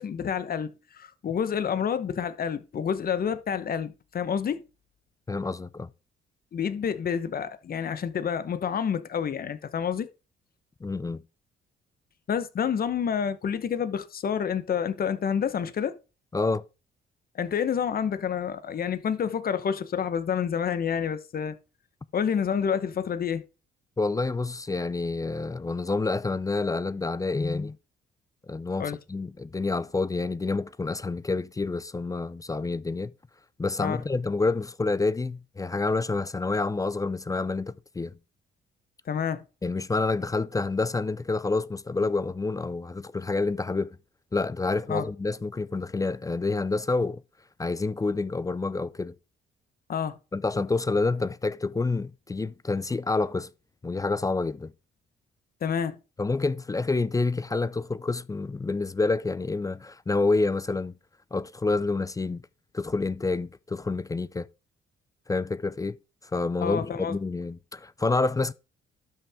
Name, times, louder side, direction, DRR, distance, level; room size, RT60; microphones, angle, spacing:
voice 1, 0.0-4.7 6.5-10.1 12.3-16.0 17.3-21.6 22.1-23.5 28.8-29.0 33.8-34.0 39.1-39.4 44.9-45.1 49.9-50.2 55.6-56.0 66.6-67.1, left 7 dB, 50° left, 1.0 m, -28 dB
voice 2, 5.3-5.9 10.8-11.2 16.3-16.6 24.0-27.8 28.5-33.1 33.6-38.1 39.6-43.9 44.3-47.2 47.6-49.1 50.3-53.5 53.8-54.7 56.2-60.9 61.3-62.4 62.7-64.5 65.3-66.0 66.3-68.5, left 3 dB, 15° left, 0.4 m, -28 dB
12.0 x 5.7 x 3.6 m
cardioid pair, 90°, 20 cm